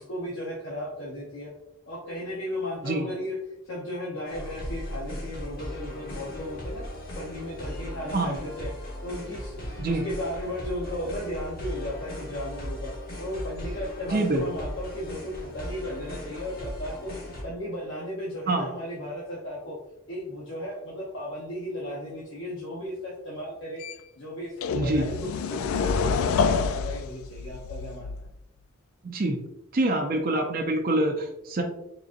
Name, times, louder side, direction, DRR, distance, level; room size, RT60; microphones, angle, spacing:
voice 1, 0.0-1.5 1.9-3.4 3.6-6.8 7.2-9.6 9.8-17.1 17.4-19.8 20.1-23.8 24.2-28.3, left 1 dB, 65° left, -5 dB, 0.8 m, -35 dB
sound 1, 4.3-17.4, equal, 45° left, 1.1 m, -37 dB
voice 2, 14.1-14.4 18.5-18.7 24.8-25.1 29.0-29.4 29.7-31.6, right 2 dB, 45° right, 2 dB, 0.5 m, -25 dB
sound 2, 23.8-23.9 24.6-28.4, left 5 dB, 85° left, 0.3 m, -27 dB
3.9 x 3.7 x 2.5 m, 0.83 s
head